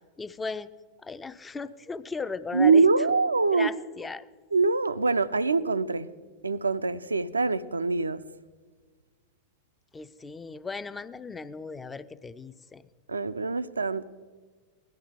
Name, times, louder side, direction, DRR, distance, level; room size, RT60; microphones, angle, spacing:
voice 1, 0.2-0.7 1.0-2.8 3.5-4.3 9.9-12.8, left 4 dB, 15° left, 13 dB, 0.4 m, -36 dB
voice 2, 2.5-3.7 4.5-6.1 6.4-8.2 13.1-14.0, right 4 dB, 80° right, 13 dB, 0.4 m, -24 dB
18.0 x 11.5 x 3.7 m, 1.5 s
figure-of-eight pair, 90°, 0 cm